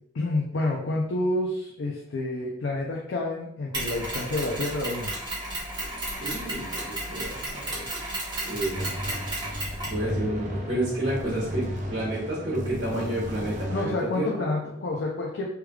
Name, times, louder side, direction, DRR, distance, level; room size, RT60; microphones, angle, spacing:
voice 1, 0.1-5.1 13.7-15.5, left 2 dB, 65° left, -2 dB, 0.5 m, -29 dB
Mechanisms, 3.7-10.0, right 1 dB, 20° right, 1.1 m, -33 dB
voice 2, 6.2-7.8 8.4-9.1 9.4-14.5, right 1 dB, 65° right, -7 dB, 1.2 m, -31 dB
sound 1, 8.7-13.9, equal, 40° right, 0.5 m, -34 dB
3.3 x 3.2 x 2.3 m, 0.71 s
head